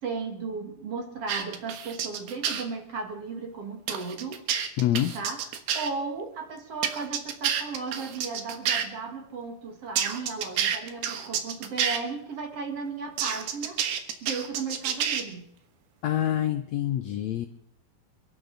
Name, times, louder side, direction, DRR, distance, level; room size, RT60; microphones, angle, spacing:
voice 1, 0.0-4.4 5.1-5.4 5.7-13.8 14.2-15.4, right 4 dB, 45° right, 4 dB, 2.5 m, -35 dB
sound 1, 1.3-2.6 3.9-5.9 6.8-8.8 10.0-12.0 13.2-15.2, right 8 dB, 85° right, 3.3 m, -29 dB
voice 2, 4.8-5.1 16.0-17.5, left 12 dB, 85° left, 7 dB, 1.6 m, -26 dB
28.5 x 12.5 x 4.0 m, 0.75 s
omnidirectional pair, 4.3 m